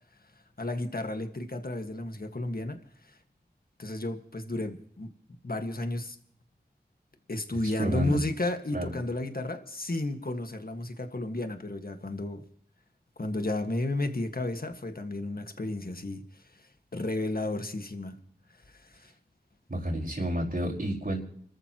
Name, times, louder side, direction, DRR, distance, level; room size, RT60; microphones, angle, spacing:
voice 1, 0.6-3.2 3.8-5.1 5.4-6.2 7.3-12.4 13.2-18.2 18.7-19.1, left 2 dB, 60° left, 1.7 m, -33 dB
voice 2, 7.8-8.2 8.7-9.0 19.7-21.2, right 1 dB, 60° right, 4.8 m, -30 dB
30.0 x 13.5 x 3.0 m
wide cardioid pair, 40°, 17 cm